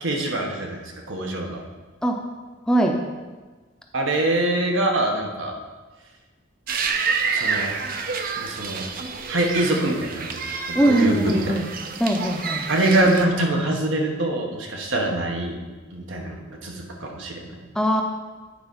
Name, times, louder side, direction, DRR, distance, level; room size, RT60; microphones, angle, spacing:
voice 1, 0.0-1.6 3.9-5.5 7.3-7.8 8.3-8.9 9.3-10.4 10.7-11.6 12.7-15.6 15.9-17.6, right 1 dB, 75° right, 1 dB, 1.2 m, -24 dB
voice 2, 2.7-3.0 10.7-11.7 12.0-12.7 17.8-18.0, right 1 dB, 5° left, 1 dB, 0.5 m, -21 dB
sound 1, 6.7-13.2, right 5 dB, 45° right, 0.5 m, -28 dB
9.1 x 4.3 x 5.3 m, 1.3 s
head